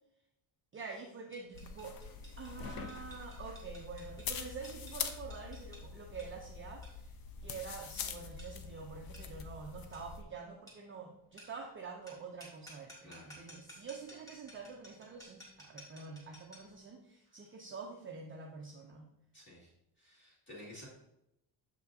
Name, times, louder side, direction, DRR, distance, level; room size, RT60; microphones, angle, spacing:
voice 1, 0.7-2.0 2.4-7.1 7.4-19.1, right 5 dB, 30° right, 1 dB, 0.4 m, -47 dB
sound 1, 1.3-16.8, equal, 5° left, 1.7 m, -57 dB
sound 2, 1.5-10.2, left 6 dB, 50° left, 0.5 m, -44 dB
voice 2, 19.3-19.7 20.0-20.9, left 1 dB, 25° left, -6 dB, 1.9 m, -52 dB
6.9 x 5.4 x 2.6 m, 0.82 s
cardioid pair, 170°, 47 cm